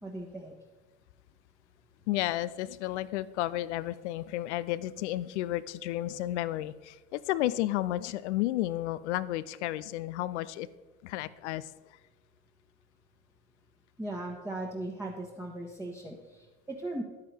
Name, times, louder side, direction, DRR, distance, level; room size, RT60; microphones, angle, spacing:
voice 1, 0.0-0.5 14.0-17.0, right 1 dB, 10° right, -1 dB, 1.3 m, -38 dB
voice 2, 2.1-10.7 11.0-11.7, left 15 dB, 80° left, 17 dB, 0.5 m, -32 dB
10.0 x 9.2 x 3.4 m, 1.2 s
hypercardioid pair, 70°, 34 cm